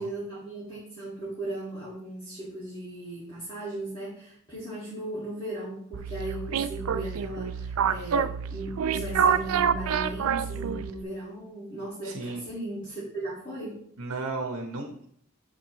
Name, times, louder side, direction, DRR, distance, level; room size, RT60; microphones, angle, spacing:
voice 1, 0.0-13.8, right 1 dB, 20° left, -8 dB, 1.9 m, -37 dB
sound 1, 5.9-11.0, right 7 dB, 70° right, 0.4 m, -27 dB
voice 2, 12.0-12.4 14.0-15.1, right 3 dB, 90° right, 3 dB, 0.9 m, -34 dB
7.5 x 6.6 x 3.0 m, 0.64 s
head